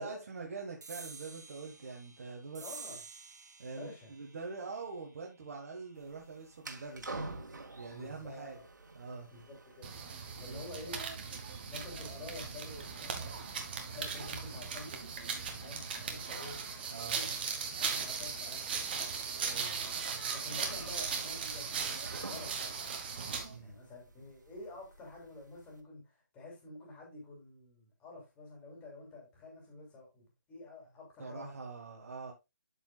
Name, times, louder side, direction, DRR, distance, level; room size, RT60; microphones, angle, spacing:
voice 1, 0.0-2.6 3.6-7.3 7.7-8.6 9.0-9.3 10.4-10.6 16.9-17.3 19.4-19.9 23.5-23.8 31.2-32.3, right 4 dB, 50° right, 1.7 m, -44 dB
sound 1, 0.8-7.7, right 4 dB, 65° right, 1.7 m, -52 dB
voice 2, 2.6-3.0 3.7-4.1 7.9-8.6 9.3-11.0 11.6-13.6 13.9-15.1 15.3-16.6 16.9-17.4 17.8-19.1 20.3-21.9 22.2-22.7 23.6-31.5, left 2 dB, 10° left, 2.9 m, -49 dB
sound 2, 5.9-25.8, right 2 dB, 85° right, 2.1 m, -51 dB
sound 3, 9.8-23.5, right 6 dB, 30° right, 1.4 m, -38 dB
12.0 x 4.9 x 2.4 m
hypercardioid pair, 165°, 10 cm